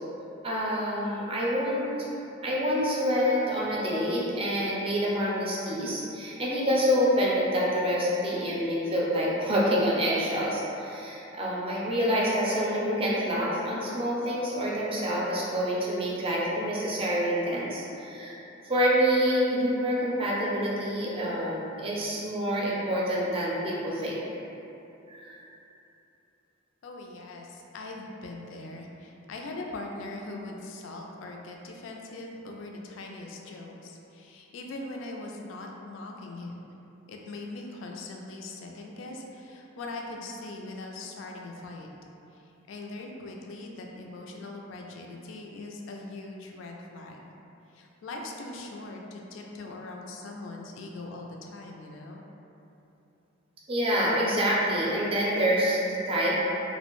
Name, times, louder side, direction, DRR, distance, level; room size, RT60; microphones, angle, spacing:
voice 1, 0.4-1.9 2.4-18.3 18.6-24.2 25.1-25.4 53.7-55.8 56.1-56.4, equal, 30° right, -6 dB, 0.4 m, -27 dB
voice 2, 26.8-36.7 37.1-41.9 42.3-42.4 42.7-47.3 47.7-52.2, left 2 dB, 75° left, 0 dB, 0.3 m, -41 dB
2.5 x 2.0 x 2.9 m, 2.9 s
head